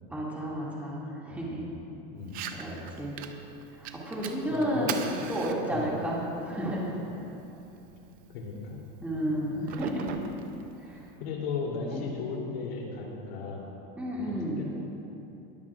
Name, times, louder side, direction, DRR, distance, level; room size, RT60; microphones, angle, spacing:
voice 1, 0.1-1.6 2.6-3.2 3.7-6.2 6.5-6.9 9.0-10.2 10.8-11.0 11.9-12.1 14.0-14.6, equal, 5° right, -6 dB, 2.3 m, -32 dB
voice 2, 2.1-2.7 4.5-4.9 5.7-5.9 8.3-8.8 9.5-9.6 11.2-13.7 14.3-14.7, left 4 dB, 80° left, -2 dB, 3.2 m, -36 dB
Fire, 2.2-11.2, right 8 dB, 30° right, 0.6 m, -42 dB
20.5 x 14.0 x 2.5 m, 3.0 s
supercardioid pair, 170°, 30 cm